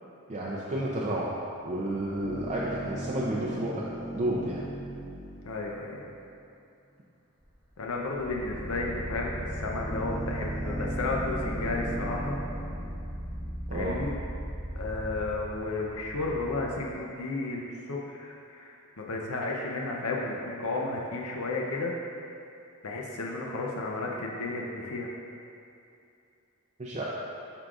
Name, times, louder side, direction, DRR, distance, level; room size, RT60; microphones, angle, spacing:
voice 1, 0.3-1.3 1.6-3.7 4.1-4.6 13.7-13.9 26.8-27.0, right 1 dB, 30° right, -5 dB, 0.5 m, -31 dB
sound 1, 2.0-6.4 7.4-7.5 7.9-17.0, equal, 5° left, 1.0 m, -37 dB
voice 2, 5.4-6.0 7.8-12.4 13.7-14.1 14.7-22.0 22.8-25.1, left 2 dB, 70° left, -2 dB, 0.6 m, -33 dB
11.0 x 3.7 x 2.4 m, 2.6 s
head